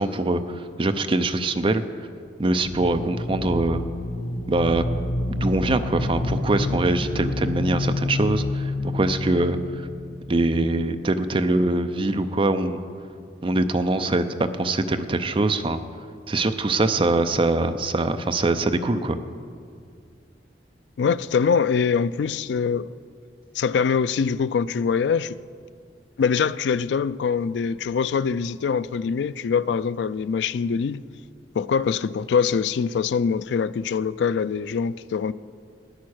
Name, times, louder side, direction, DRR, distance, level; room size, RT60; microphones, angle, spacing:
voice 1, 0.0-1.8 2.4-3.8 4.5-4.8 5.3-9.8 10.3-12.8 13.4-15.8 16.3-19.2, right 2 dB, 30° right, 0.5 m, -23 dB
sound 1, 2.6-11.3, left 2 dB, 50° left, 1.0 m, -28 dB
voice 2, 21.0-22.9 23.5-25.4 26.2-31.0 31.6-35.3, left 6 dB, 75° left, 0.3 m, -23 dB
13.0 x 9.5 x 6.3 m
head